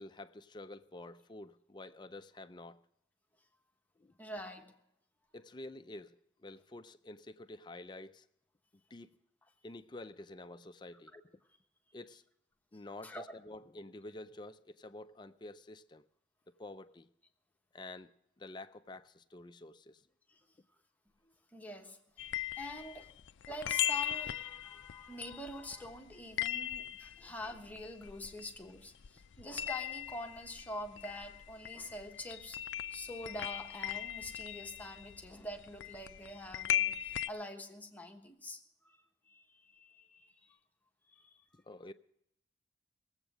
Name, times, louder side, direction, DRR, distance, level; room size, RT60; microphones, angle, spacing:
voice 1, 0.0-2.8 4.0-4.1 5.3-8.3 8.9-9.1 9.6-11.1 11.9-12.2 12.7-16.1 16.5-17.1 17.7-20.1 27.2-27.3 41.5-41.9, left 2 dB, 25° left, 0.4 m, -49 dB
voice 2, 4.2-4.8 11.1-11.2 13.0-13.2 20.3-20.4 21.5-22.2 22.5-23.1 23.5-32.6 32.9-40.6 41.1-41.4, left 1 dB, 10° left, 1.2 m, -46 dB
sound 1, 22.2-28.8 29.0-37.3, left 12 dB, 90° left, 0.4 m, -38 dB
19.5 x 8.0 x 6.1 m
head